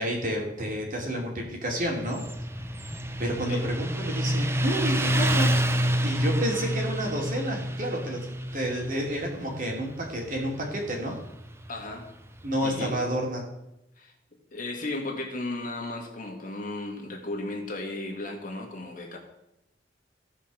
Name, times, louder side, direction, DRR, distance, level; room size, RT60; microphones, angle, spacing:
voice 1, 0.0-2.2 3.2-5.5 6.0-11.2 12.4-13.4, right 1 dB, 45° right, 0 dB, 2.8 m, -30 dB
Motorcycle, 1.8-13.0, equal, 15° right, 0.6 m, -29 dB
voice 2, 11.7-12.1 12.6-13.0 14.0-14.1 14.5-19.2, left 2 dB, 45° left, 1 dB, 2.1 m, -35 dB
15.0 x 5.2 x 6.2 m, 0.89 s
head